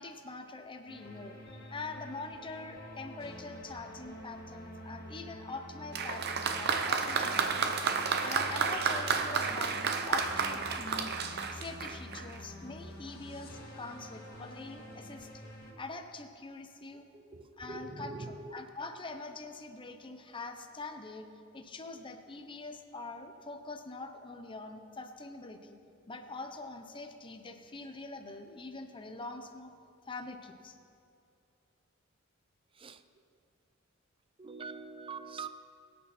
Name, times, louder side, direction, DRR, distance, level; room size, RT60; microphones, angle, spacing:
voice 1, 0.0-7.7 8.2-11.1 11.5-15.3 15.8-17.1 17.6-21.3 21.5-25.8 26.1-29.7 30.1-30.8, left 3 dB, 25° left, 5 dB, 0.8 m, -44 dB
sound 1, 0.9-15.7, left 1 dB, 45° left, 2.0 m, -48 dB
Applause, 5.9-12.4 13.3-13.4, right 5 dB, 50° right, 0.8 m, -31 dB
voice 2, 17.2-18.6 32.8-33.0 34.4-35.5, right 4 dB, 25° right, 11 dB, 0.5 m, -43 dB
21.5 x 8.6 x 4.4 m, 2.5 s
head